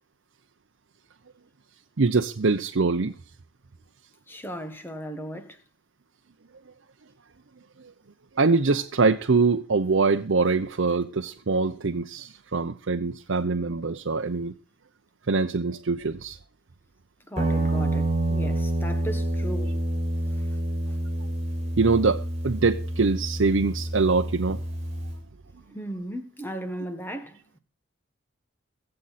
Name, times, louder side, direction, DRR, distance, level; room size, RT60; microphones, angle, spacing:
voice 1, 2.0-3.1 8.4-14.5 15.3-16.4 21.7-24.6, right 4 dB, 70° right, 0.7 m, -23 dB
voice 2, 4.3-5.6 17.3-19.8 20.2-20.4 25.7-27.4, equal, 10° left, 1.4 m, -36 dB
Guitar, 17.4-25.2, right 1 dB, 30° right, 5.3 m, -28 dB
23.0 x 7.7 x 4.2 m
head